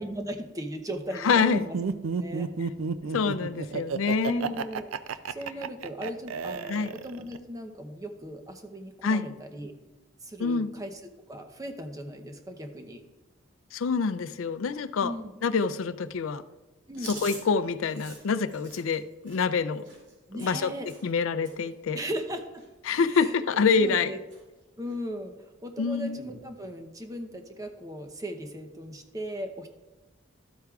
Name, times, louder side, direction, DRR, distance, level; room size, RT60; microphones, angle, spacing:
voice 1, 0.0-1.8 2.1-2.5 4.2-9.7 10.2-11.0 11.3-13.0 15.0-15.3 16.9-17.2 20.3-20.9 21.9-22.6 23.1-23.3 23.7-24.2 24.8-29.7, equal, 15° right, 5 dB, 0.7 m, -37 dB
voice 2, 1.2-1.7 3.1-4.5 6.7-6.9 9.0-9.3 10.4-10.7 13.7-15.1 15.4-16.4 17.2-19.8 20.3-20.7 21.0-22.0 22.9-24.1 25.8-26.2, left 5 dB, 90° left, 13 dB, 0.4 m, -26 dB
Laughter, 1.4-7.4, right 5 dB, 90° right, 0.4 m, -31 dB
Chewing mastication, 16.9-21.2 21.4-21.7 22.0-22.9 23.2-23.5 23.7-24.4 24.8-25.0 26.0-26.4, right 3 dB, 65° right, 2.7 m, -46 dB
12.5 x 8.1 x 2.4 m, 1.1 s
head